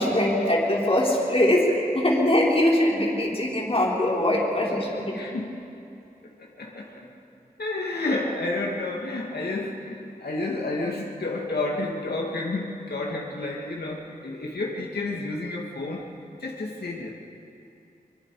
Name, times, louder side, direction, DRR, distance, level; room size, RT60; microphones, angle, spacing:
voice 1, 0.0-1.6 1.9-5.1, left 1 dB, 35° left, -4 dB, 5.0 m, -22 dB
voice 2, 5.1-5.6 6.4-7.1 7.6-16.0 16.4-17.1, left 2 dB, 90° left, -2 dB, 2.6 m, -30 dB
25.0 x 23.5 x 5.1 m, 2.7 s
wide cardioid pair, 85°, 16 cm